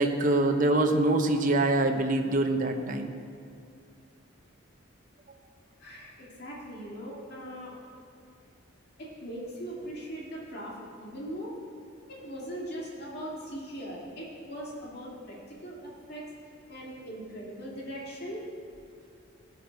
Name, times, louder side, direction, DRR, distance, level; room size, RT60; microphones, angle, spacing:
voice 1, 0.0-3.1, right 2 dB, 40° right, 4 dB, 0.9 m, -24 dB
voice 2, 5.8-7.7 9.0-11.5 12.1-16.3 16.7-18.5, equal, 50° left, -4 dB, 2.2 m, -40 dB
17.0 x 8.0 x 5.3 m, 2.4 s
head